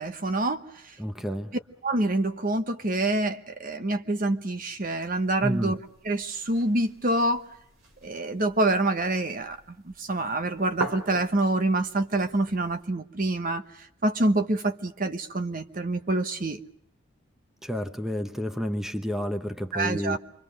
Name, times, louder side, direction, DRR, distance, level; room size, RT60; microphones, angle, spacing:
voice 1, 0.0-0.9 1.8-5.8 6.0-7.5 8.0-9.6 9.9-13.6 14.0-16.6 19.7-20.2, right 2 dB, 40° right, 1.1 m, -26 dB
voice 2, 1.0-1.5 5.4-5.7 17.6-20.2, equal, ahead, 0.9 m, -30 dB
sound 1, 5.1-12.9, right 2 dB, 85° right, 3.2 m, -43 dB
28.0 x 24.0 x 6.5 m
head